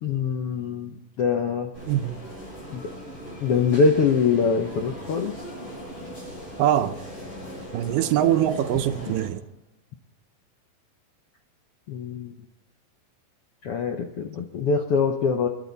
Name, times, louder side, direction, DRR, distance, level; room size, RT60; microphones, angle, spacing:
voice 1, 0.0-1.7 2.7-2.8 3.4-5.4 11.9-12.3 13.6-15.5, left 5 dB, 80° left, 4 dB, 1.3 m, -23 dB
sound 1, 1.7-9.3, equal, 40° left, 7.2 m, -39 dB
voice 2, 6.6-7.0 7.7-9.4, right 11 dB, 75° right, 8 dB, 2.3 m, -23 dB
29.0 x 12.0 x 4.0 m, 0.93 s
omnidirectional pair, 4.1 m